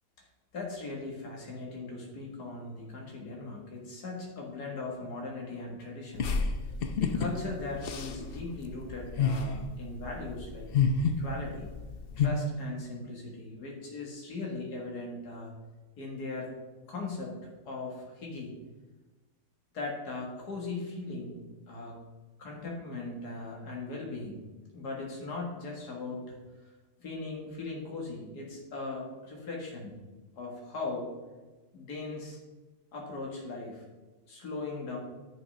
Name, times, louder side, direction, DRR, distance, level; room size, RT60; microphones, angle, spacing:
voice 1, 0.5-6.4 7.0-10.7 11.0-11.7 12.2-15.5 16.0-16.5 16.9-18.6 19.7-22.0 22.4-24.5 24.7-26.4 26.6-26.7 27.0-30.0 30.3-31.1 31.7-32.4 32.9-33.9 34.3-35.0, left 3 dB, 80° left, -2 dB, 2.4 m, -39 dB
sound 1, 6.2-12.3, left 5 dB, 50° left, 0.7 m, -30 dB
11.0 x 6.8 x 5.4 m, 1.2 s
omnidirectional pair, 1.7 m